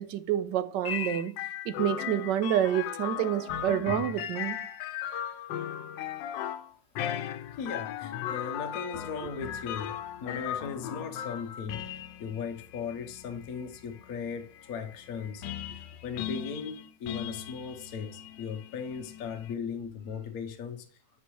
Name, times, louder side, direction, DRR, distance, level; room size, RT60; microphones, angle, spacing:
voice 1, 0.0-1.4 1.6-4.6, right 11 dB, 75° right, 1.3 m, -28 dB
sound 1, 0.8-19.5, left 10 dB, 85° left, 1.3 m, -37 dB
voice 2, 7.6-20.9, left 6 dB, 60° left, 1.2 m, -38 dB
9.9 x 5.3 x 3.1 m
omnidirectional pair, 2.0 m